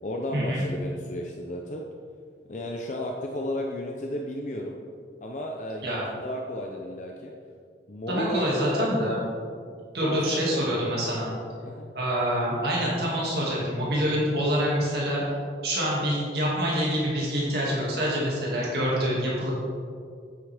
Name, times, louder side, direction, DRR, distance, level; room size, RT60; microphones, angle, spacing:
voice 1, 0.0-1.8 2.5-4.8 5.2-7.3 7.9-9.1 10.0-10.7 11.6-11.9, left 1 dB, 40° left, 0 dB, 0.6 m, -33 dB
voice 2, 8.1-9.2 9.9-11.3 11.9-15.2 15.6-19.5, equal, 60° right, -6 dB, 2.2 m, -26 dB
9.3 x 7.9 x 3.5 m, 2.2 s
head